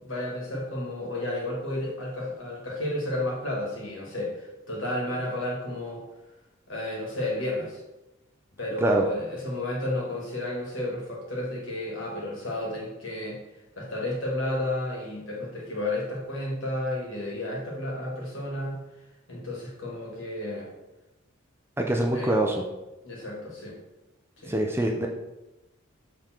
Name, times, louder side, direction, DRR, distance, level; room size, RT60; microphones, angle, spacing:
voice 1, 0.0-6.0 6.7-7.8 8.6-13.4 13.8-18.8 19.3-20.7 22.1-22.5 23.0-23.8 24.4-24.5, left 1 dB, 65° left, -3 dB, 2.2 m, -32 dB
voice 2, 21.8-22.6 24.4-25.1, right 1 dB, 10° right, 2 dB, 0.5 m, -24 dB
6.7 x 3.7 x 4.5 m, 0.99 s
head